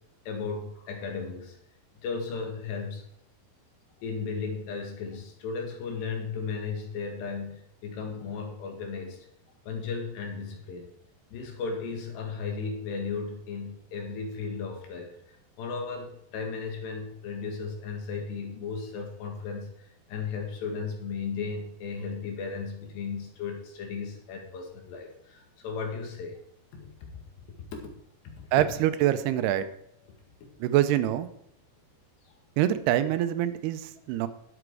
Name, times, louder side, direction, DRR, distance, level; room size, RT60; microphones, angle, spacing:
voice 1, 0.3-1.6 2.0-3.1 4.0-9.3 9.7-10.9 11.3-26.4 26.8-26.9 27.7-27.9 28.2-28.4, left 5 dB, 85° left, 2 dB, 4.2 m, -35 dB
voice 2, 28.5-29.7 30.6-31.3 32.6-34.3, right 12 dB, 80° right, 11 dB, 2.6 m, -25 dB
11.0 x 7.8 x 4.8 m, 0.75 s
omnidirectional pair, 4.7 m